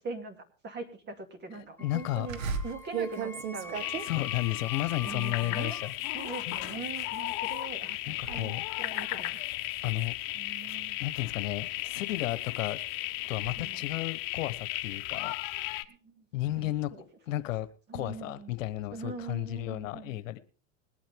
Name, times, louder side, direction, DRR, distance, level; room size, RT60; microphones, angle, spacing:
voice 1, 0.0-3.9 5.0-5.8 6.1-8.5 8.8-9.4 10.3-11.0 13.6-13.9 15.4-15.6 15.9-16.3 16.6-17.1 17.9-18.5 18.9-20.2, right 3 dB, 25° right, 6 dB, 2.5 m, -42 dB
voice 2, 1.8-2.3 4.1-5.9 6.5-6.6 8.1-8.6 9.8-10.1 11.0-12.8 13.3-15.3 16.3-16.9 17.3-17.7 17.9-20.4, left 15 dB, 75° left, 13 dB, 1.2 m, -33 dB
Wind instrument woodwind instrument, 1.8-5.9, left 4 dB, 5° left, 0.7 m, -45 dB
sound 1, 2.3-7.7 8.0-8.4 8.8-10.8 11.4-13.6, right 6 dB, 85° right, 1.5 m, -39 dB
sound 2, 3.7-15.8, left 17 dB, 50° left, 1.1 m, -35 dB
21.0 x 9.0 x 3.6 m, 0.37 s
supercardioid pair, 120°, 39 cm